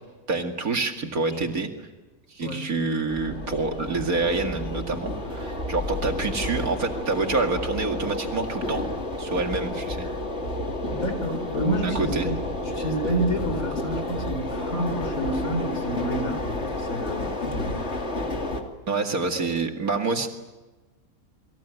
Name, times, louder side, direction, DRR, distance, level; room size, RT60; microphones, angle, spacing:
voice 1, 0.3-1.9 2.3-8.8 9.2-10.1 11.8-12.3 18.9-20.3, right 3 dB, 75° right, 4 dB, 2.7 m, -27 dB
sound 1, 3.1-18.6, left 1 dB, 50° left, 3.0 m, -31 dB
voice 2, 10.9-12.4 12.6-17.8, right 1 dB, 65° left, 8 dB, 4.6 m, -29 dB
28.5 x 21.5 x 9.2 m, 1.2 s
omnidirectional pair, 1.5 m